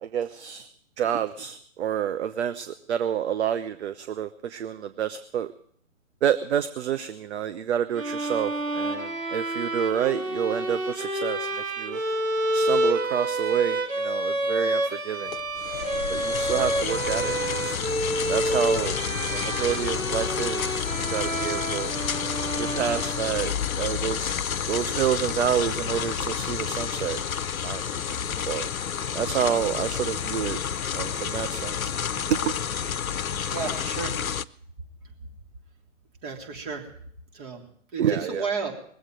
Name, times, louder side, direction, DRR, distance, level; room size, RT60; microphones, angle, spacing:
voice 1, 0.0-0.7 1.0-5.5 6.2-11.5 11.8-12.0 12.5-15.3 15.7-17.8 18.3-19.0 19.3-20.8 21.1-21.9 22.6-24.3 24.7-27.2 27.6-28.7 29.1-30.6 30.9-32.0 32.3-32.5 38.0-38.5, right 9 dB, 55° right, 12 dB, 0.8 m, -28 dB
sound 1, 7.9-23.6, right 1 dB, 75° right, 2.6 m, -29 dB
sound 2, 15.3-34.4, left 8 dB, 85° left, 0.6 m, -30 dB
voice 2, 33.5-34.2 36.2-36.9 37.3-37.6 37.9-38.8, right 4 dB, 35° right, 0 dB, 3.5 m, -32 dB
20.5 x 7.9 x 7.7 m, 0.62 s
hypercardioid pair, 135°, 40 cm